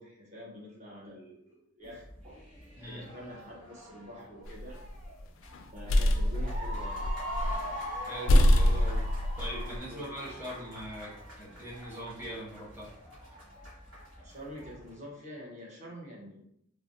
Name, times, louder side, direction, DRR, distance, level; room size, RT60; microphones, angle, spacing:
voice 1, 0.0-2.4 2.8-4.8 5.7-7.1 9.9-10.1 14.2-16.5, equal, 35° right, -4 dB, 0.9 m, -46 dB
sound 1, 1.8-14.9, equal, 65° right, 1.3 m, -43 dB
sound 2, 4.5-5.0 5.5-7.7 7.9-8.0 8.3-9.8, left 1 dB, 75° left, 0.3 m, -25 dB
voice 2, 8.0-9.0 9.4-12.9, equal, 10° right, -7 dB, 1.0 m, -41 dB
3.3 x 2.1 x 2.6 m, 0.73 s
head